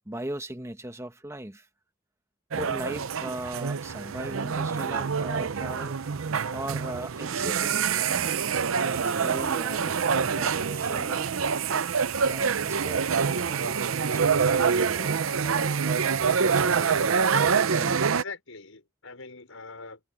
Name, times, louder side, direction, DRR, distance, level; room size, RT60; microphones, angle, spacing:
voice 1, 0.0-1.7 2.5-6.0 6.5-8.3 8.7-11.4 12.2-16.0 17.7-18.0, right 1 dB, 15° right, 1.4 m, -39 dB
sound 1, 2.5-18.2, right 6 dB, 85° right, 0.7 m, -26 dB
voice 2, 18.2-20.0, left 4 dB, 85° left, 5.3 m, -42 dB
head